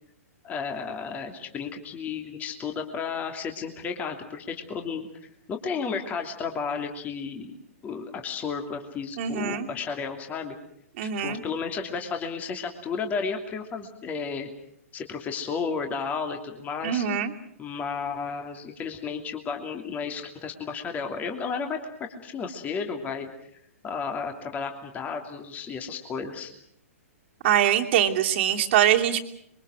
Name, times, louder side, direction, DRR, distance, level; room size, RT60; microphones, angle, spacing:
voice 1, 0.4-5.1 5.5-7.6 7.8-10.5 11.0-14.5 14.9-17.0 17.6-21.8 22.1-23.3 23.8-26.5, left 5 dB, 20° left, 4 dB, 2.9 m, -33 dB
voice 2, 9.2-9.7 11.0-11.4 16.8-17.3 27.4-29.2, right 10 dB, 50° right, 4 dB, 2.8 m, -23 dB
27.0 x 23.5 x 6.3 m, 0.71 s
hypercardioid pair, 135°, 8 cm